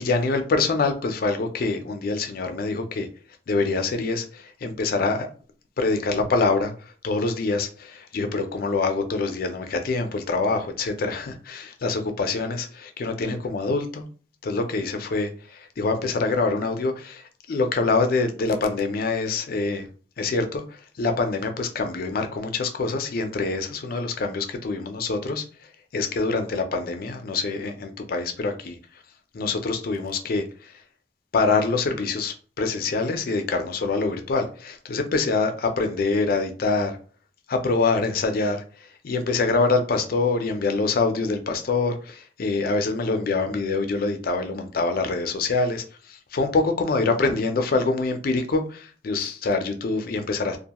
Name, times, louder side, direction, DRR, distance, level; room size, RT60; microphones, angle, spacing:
voice 1, 0.0-3.1 3.5-5.3 5.8-14.1 14.4-19.9 20.2-28.8 29.3-30.7 31.3-37.0 37.5-50.6, left 3 dB, 55° left, 0.4 m, -25 dB
2.4 x 2.2 x 2.8 m
head